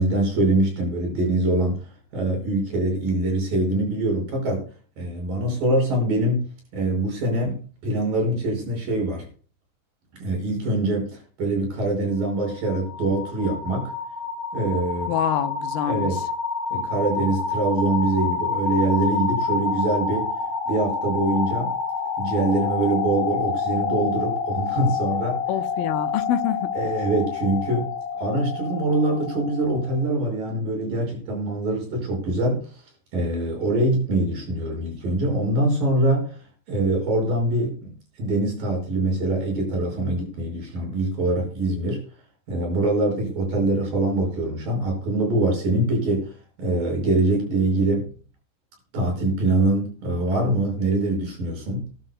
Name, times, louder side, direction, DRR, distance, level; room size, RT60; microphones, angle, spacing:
voice 1, 0.0-4.6 5.0-6.5 6.7-9.3 10.2-13.9 14.5-15.1 15.9-16.2 16.7-20.3 20.7-21.7 22.2-25.4 26.8-27.9 28.2-32.6 33.1-36.4 36.7-42.0 42.5-46.3 46.6-48.1 48.9-51.9, right 2 dB, 80° right, 1 dB, 7.1 m, -24 dB
sound 1, 12.2-30.1, left 5 dB, 35° left, 7.8 m, -28 dB
voice 2, 15.1-16.2 25.5-26.7, left 9 dB, 85° left, 8 dB, 2.5 m, -26 dB
20.0 x 12.5 x 2.2 m, 0.41 s
omnidirectional pair, 4.0 m